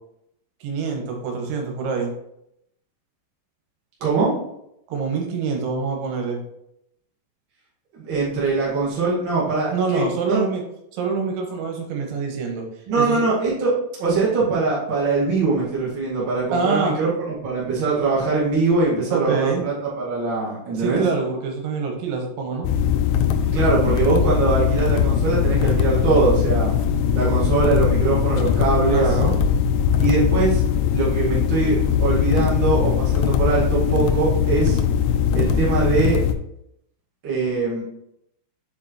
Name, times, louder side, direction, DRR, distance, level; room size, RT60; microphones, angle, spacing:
voice 1, 0.6-2.1 4.9-6.4 9.7-10.6 10.9-12.6 13.0-13.2 16.5-17.0 19.1-19.6 20.8-22.7 28.9-29.4, right 5 dB, 75° right, 2 dB, 3.5 m, -25 dB
voice 2, 4.0-4.3 7.9-10.0 10.3-10.4 12.9-13.7 14.0-21.0 23.5-26.7 27.1-29.0 30.0-30.6 30.9-34.8 35.3-36.2 37.2-37.8, right 4 dB, 55° right, -8 dB, 1.3 m, -22 dB
sound 1, 22.6-36.3, left 8 dB, 85° left, 3.0 m, -20 dB
7.3 x 5.2 x 2.9 m, 0.78 s
omnidirectional pair, 5.7 m